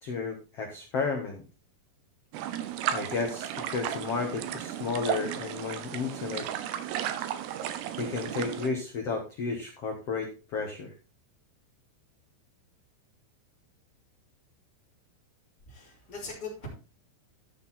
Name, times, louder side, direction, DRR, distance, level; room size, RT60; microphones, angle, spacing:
voice 1, 0.0-1.4 2.9-6.5 8.0-10.9, left 4 dB, 80° left, 2 dB, 1.3 m, -32 dB
sound 1, 2.3-8.7, right 10 dB, 75° right, 2.6 m, -34 dB
voice 2, 15.7-16.7, left 3 dB, 20° left, -6 dB, 4.1 m, -40 dB
13.0 x 6.0 x 4.2 m, 0.33 s
omnidirectional pair, 5.4 m